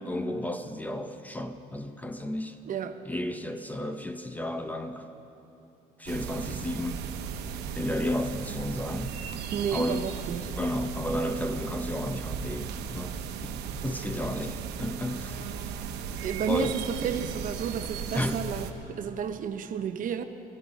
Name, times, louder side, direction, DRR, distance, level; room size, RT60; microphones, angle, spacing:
voice 1, 0.0-2.6 3.1-5.1 6.0-7.0 7.8-9.2 9.7-10.0 10.6-13.1 13.4-15.4 16.5-16.7 17.7-17.8 18.1-18.4, left 1 dB, 10° left, 0.6 m, -32 dB
voice 2, 2.7-3.0 9.5-10.5 16.2-20.2, right 7 dB, 50° right, 0.7 m, -32 dB
sound 1, 6.1-18.7, right 7 dB, 85° right, 0.8 m, -36 dB
15.5 x 13.5 x 5.2 m
cardioid pair, 110°, 17 cm